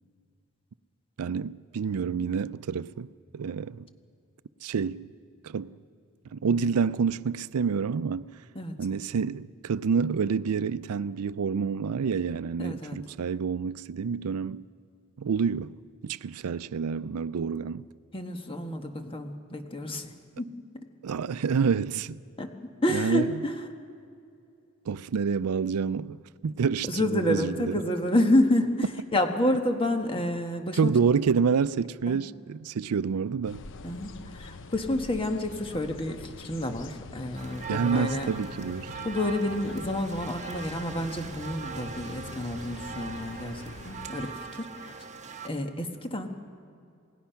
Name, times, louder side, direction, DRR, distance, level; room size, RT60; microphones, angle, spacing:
voice 1, 1.2-3.1 3.3-3.9 4.6-5.1 5.4-5.7 6.3-8.3 8.8-14.6 15.2-15.7 16.0-17.9 21.0-22.2 22.9-23.4 24.9-27.8 30.7-33.6 37.7-38.9, right 6 dB, 85° right, 0.4 m, -28 dB
voice 2, 12.6-13.0 18.1-20.5 22.4-22.5 22.8-23.5 26.9-28.9 29.1-30.9 32.1-32.2 33.8-38.3 39.0-45.0 45.4-46.3, left 1 dB, 25° left, 1.5 m, -29 dB
sound 1, 33.4-44.3, left 3 dB, 60° left, 0.8 m, -44 dB
sound 2, 37.3-45.5, right 5 dB, 35° right, 1.5 m, -40 dB
28.0 x 18.0 x 5.8 m
head